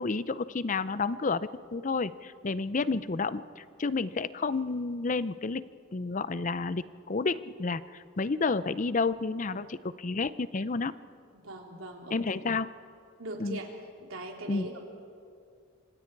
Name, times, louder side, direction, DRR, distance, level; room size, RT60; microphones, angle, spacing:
voice 1, 0.0-5.6 5.9-10.9 12.1-12.7 13.4-13.6 14.5-14.7, left 4 dB, 40° left, 15 dB, 0.6 m, -30 dB
voice 2, 11.3-12.2 13.2-13.7 14.0-14.8, right 1 dB, 90° right, 0 dB, 3.5 m, -40 dB
26.5 x 26.0 x 4.7 m, 2.3 s
head